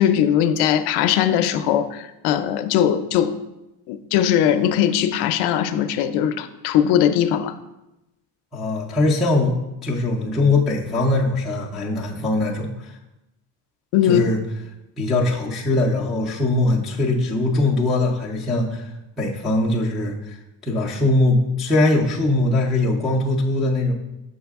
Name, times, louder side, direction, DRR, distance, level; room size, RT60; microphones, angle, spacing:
voice 1, 0.0-3.4 3.9-7.5 13.9-14.3, left 10 dB, 65° left, 10 dB, 0.5 m, -20 dB
voice 2, 8.5-9.6 9.8-12.9 14.0-14.4 15.0-18.9 19.2-20.4 20.6-23.9, left 2 dB, ahead, -6 dB, 0.3 m, -21 dB
6.4 x 4.8 x 3.5 m, 0.94 s
cardioid pair, 175°, 42 cm